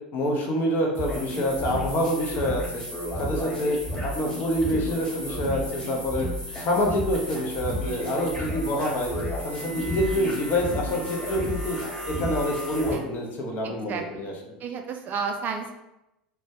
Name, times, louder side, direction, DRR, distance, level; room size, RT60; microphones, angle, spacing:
voice 1, 0.1-2.8 3.2-6.3 6.6-9.1 9.4-11.8 12.1-14.3, equal, 45° left, 1 dB, 0.6 m, -27 dB
sound 1, 0.9-12.9, equal, 15° left, 0.9 m, -32 dB
voice 2, 13.6-14.3 14.6-15.7, right 5 dB, 40° right, 4 dB, 0.3 m, -32 dB
2.2 x 2.1 x 2.7 m, 0.90 s
hypercardioid pair, 80°, 5 cm